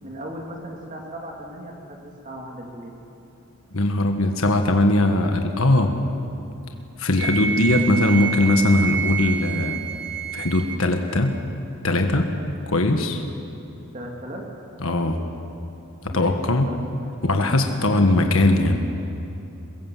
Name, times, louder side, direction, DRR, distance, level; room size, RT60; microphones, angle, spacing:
voice 1, 0.0-2.9 13.9-14.4 16.1-17.4 17.8-18.3, equal, 35° right, -1 dB, 2.5 m, -37 dB
voice 2, 3.7-5.9 7.0-9.8 10.3-11.3 11.8-12.3 12.7-13.2 14.8-15.2 16.0-16.7 17.2-18.8, left 1 dB, 75° left, 4 dB, 1.5 m, -20 dB
Wind instrument woodwind instrument, 7.2-10.8, right 6 dB, 50° right, 1.4 m, -28 dB
23.5 x 21.0 x 7.5 m, 2.8 s
head